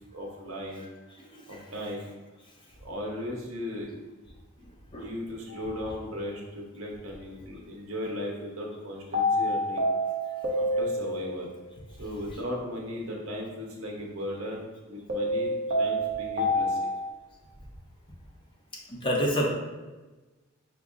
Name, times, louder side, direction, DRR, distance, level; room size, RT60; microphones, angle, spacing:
voice 1, 0.1-0.9 1.5-2.1 2.8-3.9 4.2-4.3 5.0-9.8 10.5-11.5 12.0-16.9, left 1 dB, 80° right, -1 dB, 0.9 m, -37 dB
voice 2, 1.2-1.6 4.9-5.1 12.3-12.4 18.9-19.5, equal, 25° left, -2 dB, 0.7 m, -29 dB
sound 1, 5.5-5.7 9.1-11.5 15.1-17.1, equal, 40° right, 0.7 m, -27 dB
5.2 x 2.0 x 3.5 m, 1.2 s
head